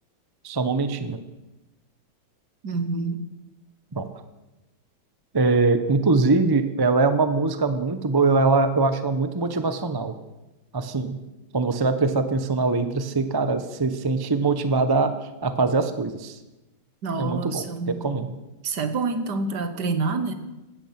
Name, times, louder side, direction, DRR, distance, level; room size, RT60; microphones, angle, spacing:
voice 1, 0.4-1.2 3.9-4.1 5.3-10.1 10.7-11.2 11.5-16.4 17.1-18.3, right 3 dB, 35° right, 10 dB, 0.4 m, -22 dB
voice 2, 2.6-3.2 17.0-18.0 18.6-20.3, right 4 dB, 55° right, 9 dB, 1.8 m, -27 dB
17.0 x 13.0 x 6.0 m, 1.0 s
omnidirectional pair, 2.2 m